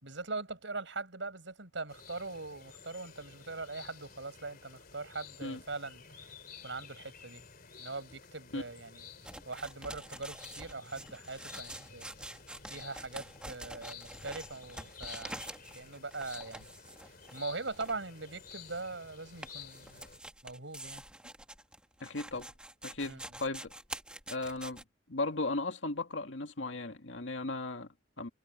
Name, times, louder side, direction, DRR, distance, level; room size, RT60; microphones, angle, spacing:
voice 1, 0.0-6.0 6.6-7.4 7.8-9.1 9.5-12.1 12.7-15.4 15.7-16.7 17.3-20.0 20.4-21.0 23.0-23.2, right 3 dB, 80° right, 5.8 m, -41 dB
sound 1, 1.9-20.2, left 6 dB, 55° left, 3.5 m, -52 dB
sound 2, 9.2-24.8, right 1 dB, 5° right, 1.7 m, -47 dB
voice 2, 22.0-22.5 22.8-23.7 24.3-24.8 25.1-28.3, left 2 dB, 85° left, 2.2 m, -36 dB
head